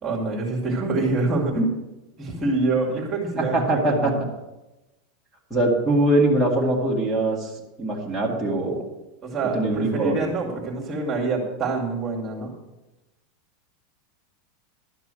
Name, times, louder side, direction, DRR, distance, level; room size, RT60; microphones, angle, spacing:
voice 1, 0.0-1.7 2.2-4.1 9.2-12.5, right 3 dB, 25° right, -2 dB, 2.3 m, -26 dB
voice 2, 3.4-4.1 5.5-7.5 7.8-8.8 9.5-10.2, right 1 dB, ahead, -3 dB, 2.2 m, -22 dB
12.0 x 5.9 x 7.7 m, 1.0 s
supercardioid pair, 155°, 0 cm